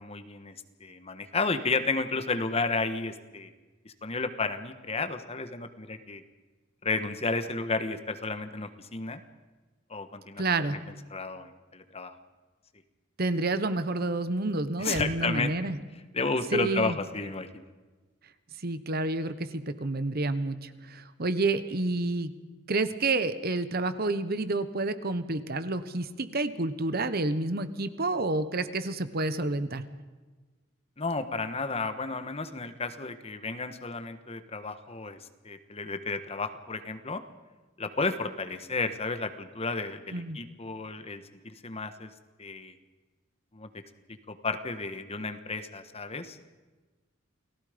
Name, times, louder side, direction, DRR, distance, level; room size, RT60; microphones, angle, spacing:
voice 1, 0.0-3.5 3.8-6.2 6.8-9.2 9.9-10.4 10.7-10.8 11.1-12.1 14.8-15.7 16.1-17.7 31.0-35.2 35.4-37.2 37.8-42.1 42.4-42.7 43.5-43.7 44.3-46.4, left 3 dB, 30° left, 9 dB, 1.4 m, -32 dB
voice 2, 10.4-10.8 13.2-15.8 16.5-17.0 18.6-22.3 22.7-29.8 40.1-40.4, right 2 dB, 50° right, 12 dB, 1.1 m, -29 dB
29.5 x 19.0 x 5.2 m, 1.3 s
head